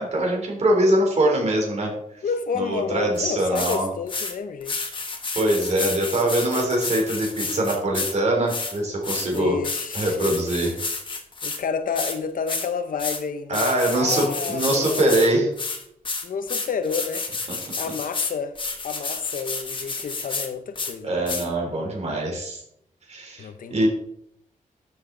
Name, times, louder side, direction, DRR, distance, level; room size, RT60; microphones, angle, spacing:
voice 1, 0.0-1.9 2.5-3.9 5.3-9.6 9.9-10.7 13.5-15.5 21.0-22.6 23.1-23.9, right 1 dB, 50° right, 3.4 m, -23 dB
voice 2, 2.2-4.8 9.3-10.3 11.4-15.2 16.2-17.3 17.7-18.6 18.8-21.3 23.4-23.9, left 6 dB, 80° left, 0.9 m, -30 dB
sound 1, 3.2-3.3 3.6-3.8 4.1-4.3 4.6-8.1 8.5-11.6 12.0-12.2 12.5-12.7 13.0-13.2 13.5-15.3 15.6-20.5 20.8-20.9 21.3-21.5, left 4 dB, 35° left, 1.5 m, -30 dB
12.5 x 7.5 x 3.9 m
wide cardioid pair, 175°, 14 cm